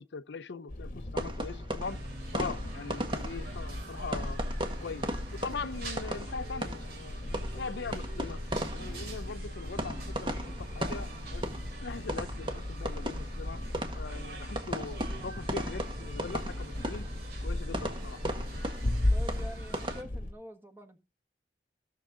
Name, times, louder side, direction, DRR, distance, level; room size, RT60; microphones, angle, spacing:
voice 1, 0.0-2.0 2.3-4.4 4.8-7.2 7.5-8.4 8.7-11.5 11.8-13.6 14.0-17.1 17.4-18.2, left 4 dB, 80° left, 0.6 m, -41 dB
sound 1, 0.7-20.3, left 1 dB, 50° left, 1.1 m, -37 dB
sound 2, 1.1-20.0, right 1 dB, 30° right, 1.6 m, -38 dB
sound 3, 1.8-20.0, right 3 dB, 60° right, 3.4 m, -48 dB
voice 2, 19.1-21.0, equal, 15° right, 1.6 m, -46 dB
16.0 x 6.6 x 3.7 m
head